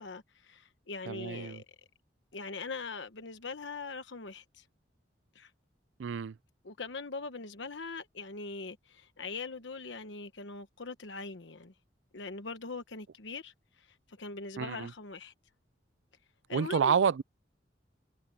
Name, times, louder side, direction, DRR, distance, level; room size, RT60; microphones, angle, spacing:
voice 1, 0.0-1.6 2.3-4.6 5.3-5.5 6.6-11.7 12.1-15.3 16.5-17.0, left 4 dB, 80° left, 1.1 m, -42 dB
voice 2, 1.1-1.6 6.0-6.4 14.6-14.9 16.5-17.2, right 6 dB, 80° right, 0.4 m, -29 dB
head